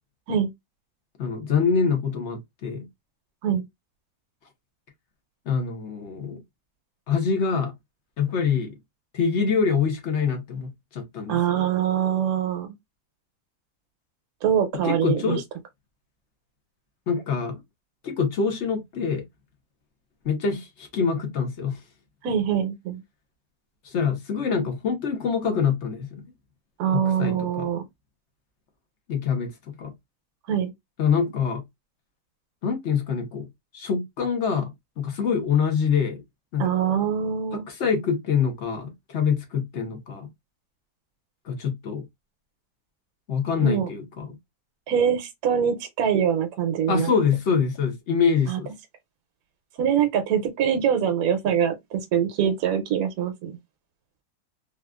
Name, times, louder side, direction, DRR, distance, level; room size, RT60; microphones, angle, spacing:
voice 1, 1.2-2.9 5.5-6.4 7.1-7.7 8.2-8.7 9.1-11.4 14.8-15.4 17.1-17.6 18.0-19.2 20.2-21.8 23.8-26.1 26.9-27.7 29.1-29.5 29.8-29.9 31.0-31.6 32.6-33.5 33.7-34.7 35.0-36.2 36.5-36.7 37.7-40.3 41.5-42.0 43.3-44.3 46.9-48.7, left 6 dB, 50° left, 1.0 m, -25 dB
voice 2, 11.3-12.7 14.4-15.4 22.2-23.0 26.8-27.8 30.5-30.7 36.6-37.6 43.6-43.9 44.9-47.1 48.5-48.6 49.8-53.6, right 8 dB, 70° right, 1.1 m, -24 dB
3.5 x 2.5 x 2.3 m
omnidirectional pair, 1.7 m